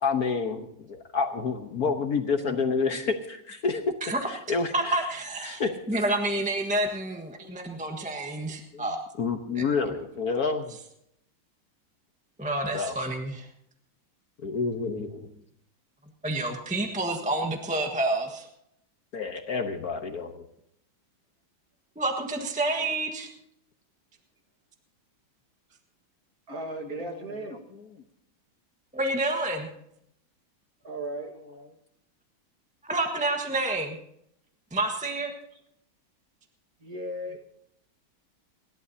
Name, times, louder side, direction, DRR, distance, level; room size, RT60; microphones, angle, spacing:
voice 1, 0.0-3.9 4.3-5.1 5.4-5.8 7.4-7.7 8.0-8.1 8.7-8.8 9.2-10.8 12.7-12.9 14.4-15.3 19.1-20.4, left 4 dB, 55° left, 5 dB, 1.4 m, -29 dB
voice 2, 4.7-5.6 5.9-9.0 9.6-9.7 12.4-13.5 16.2-18.5 22.0-23.3 28.9-29.7 32.8-34.0 34.7-35.3, right 2 dB, 5° right, 3 dB, 1.1 m, -29 dB
voice 3, 26.5-27.6 30.8-31.3 36.8-37.4, right 1 dB, 45° right, 3 dB, 2.2 m, -35 dB
29.5 x 12.0 x 2.8 m, 0.74 s
omnidirectional pair, 2.2 m